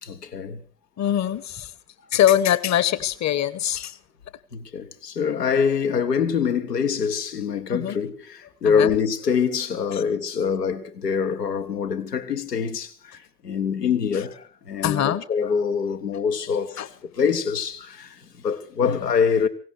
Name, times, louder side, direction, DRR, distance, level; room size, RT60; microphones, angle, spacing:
voice 1, 0.0-0.6 4.5-19.5, left 6 dB, 85° left, 1.1 m, -25 dB
voice 2, 1.0-1.7 2.1-4.0 7.7-8.0 8.6-8.9 14.8-15.2 16.8-16.9, left 11 dB, 35° left, 1.0 m, -22 dB
17.5 x 17.0 x 4.7 m
figure-of-eight pair, 55°, 47 cm